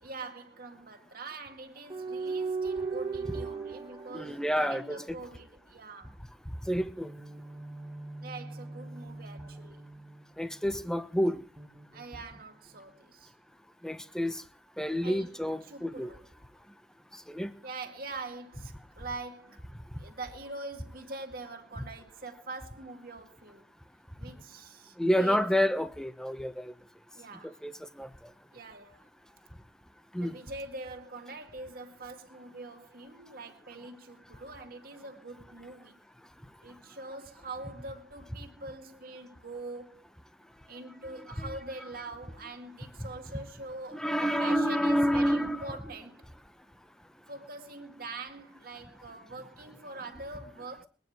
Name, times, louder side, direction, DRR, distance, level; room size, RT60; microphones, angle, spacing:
voice 1, 0.0-6.2 8.2-9.8 11.9-13.3 15.0-16.3 17.6-19.6 20.0-23.7 24.2-25.5 27.1-27.6 28.5-29.1 30.2-36.0 36.6-40.1 40.7-46.2 47.3-50.9, right 3 dB, 55° right, 2.2 m, -44 dB
sound 1, 1.9-5.6 7.0-10.8 11.6-12.8, right 4 dB, 25° right, 1.7 m, -39 dB
voice 2, 4.1-5.0 6.7-7.1 10.4-11.4 13.8-14.4 14.8-16.1 17.3-17.5 25.0-26.7 27.4-28.1 30.1-30.4 41.4-41.5 43.9-45.6, equal, 5° left, 1.1 m, -29 dB
22.0 x 9.7 x 4.6 m
head